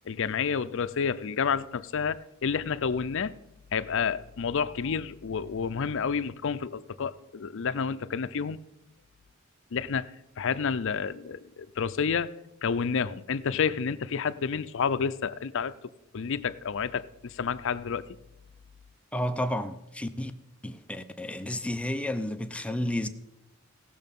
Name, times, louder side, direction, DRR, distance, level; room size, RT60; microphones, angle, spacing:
voice 1, 0.1-3.3 3.7-8.6 9.7-10.1 10.4-12.3 12.6-15.7 16.1-18.0, left 6 dB, 65° left, 0.5 m, -29 dB
voice 2, 19.1-20.3 20.6-23.1, left 1 dB, 5° left, 0.6 m, -31 dB
17.5 x 6.6 x 5.3 m
head